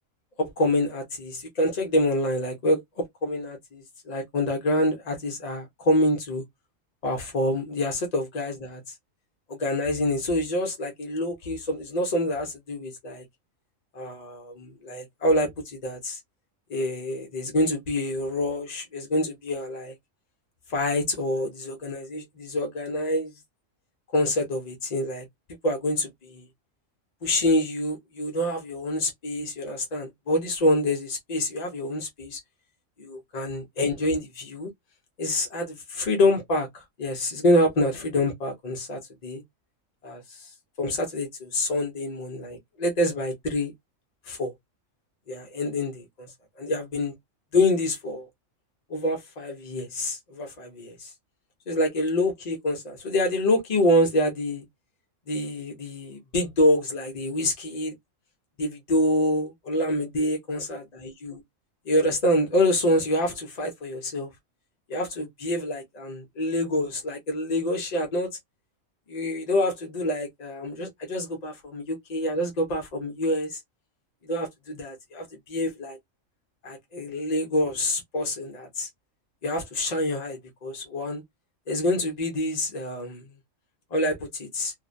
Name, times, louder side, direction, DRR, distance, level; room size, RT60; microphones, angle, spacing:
voice 1, 0.4-6.4 7.0-8.9 9.5-13.2 13.9-16.2 16.7-19.9 20.7-23.3 24.1-25.2 25.6-26.5 27.2-32.4 33.0-34.7 35.2-39.4 40.0-43.7 44.3-44.5 45.3-47.1 47.5-48.3 48.9-51.1 51.7-54.6 55.3-57.9 58.6-61.4 61.9-64.3 64.9-68.3 69.1-73.6 74.2-76.0 76.6-78.9 79.4-81.2 81.7-83.2 83.9-84.7, left 1 dB, 55° left, 0.4 m, -26 dB
2.5 x 2.0 x 2.4 m
omnidirectional pair, 1.3 m